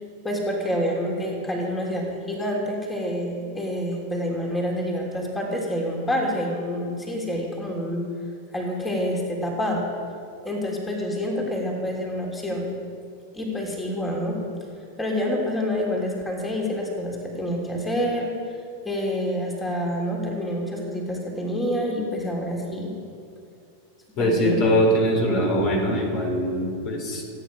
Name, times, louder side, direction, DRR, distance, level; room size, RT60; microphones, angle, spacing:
voice 1, 0.2-8.1 8.5-9.8 10.4-12.7 13.3-14.4 15.0-18.3 18.8-22.9 24.2-24.6, equal, 10° left, -1 dB, 3.2 m, -27 dB
voice 2, 24.2-27.2, equal, 40° left, 1 dB, 4.3 m, -22 dB
26.5 x 9.6 x 5.1 m, 2.4 s
figure-of-eight pair, 90°, 0 cm